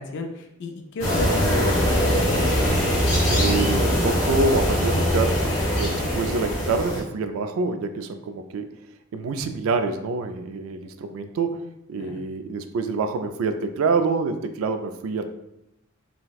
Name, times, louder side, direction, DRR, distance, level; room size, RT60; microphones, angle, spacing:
voice 1, 0.0-2.2 12.0-12.2, left 1 dB, 55° left, 3 dB, 0.3 m, -33 dB
sound 1, 1.0-7.0, equal, 70° left, 1.3 m, -22 dB
voice 2, 3.3-5.4 5.7-8.6 9.1-11.5 11.9-15.2, right 4 dB, 75° right, 8 dB, 0.3 m, -26 dB
4.1 x 2.1 x 2.3 m, 0.86 s
head